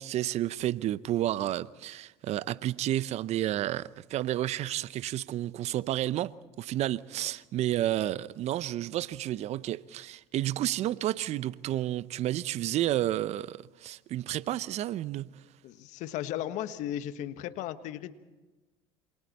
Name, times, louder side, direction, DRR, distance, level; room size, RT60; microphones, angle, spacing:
voice 1, 0.0-15.3, right 13 dB, 55° right, 0.8 m, -31 dB
voice 2, 15.6-18.1, left 12 dB, 65° left, 1.5 m, -35 dB
28.0 x 27.0 x 4.3 m
hypercardioid pair, 80°, 14 cm